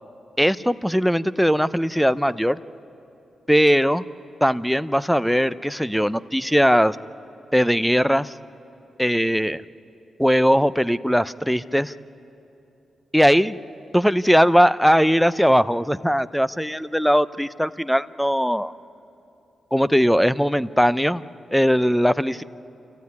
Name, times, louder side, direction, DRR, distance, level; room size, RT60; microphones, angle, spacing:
voice 1, 0.4-2.6 3.5-4.0 4.4-7.0 7.5-8.3 9.0-9.6 10.2-11.9 13.1-13.6 13.9-18.7 19.7-21.2 21.5-22.4, equal, ahead, 15 dB, 0.7 m, -19 dB
28.5 x 15.0 x 9.5 m, 2.9 s
cardioid pair, 55°, 0 cm